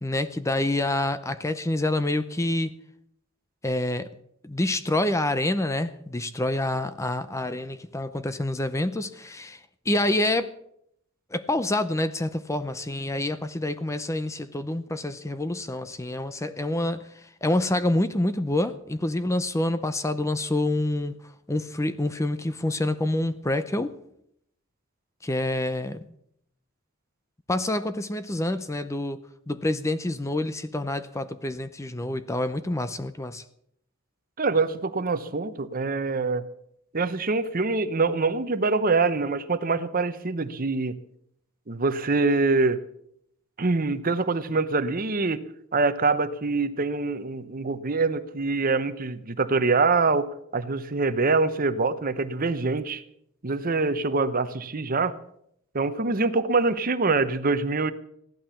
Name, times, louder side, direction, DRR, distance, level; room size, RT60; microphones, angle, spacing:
voice 1, 0.0-2.7 3.6-4.1 4.4-10.5 11.3-21.1 21.5-23.9 25.2-26.0 27.5-33.4, left 1 dB, 15° left, 12 dB, 0.6 m, -27 dB
voice 2, 34.4-36.4 36.9-40.9 41.7-42.8 43.6-45.4 45.7-53.0 53.4-55.1 55.7-57.9, right 3 dB, 40° right, 13 dB, 0.8 m, -24 dB
15.5 x 12.0 x 7.0 m, 0.73 s
head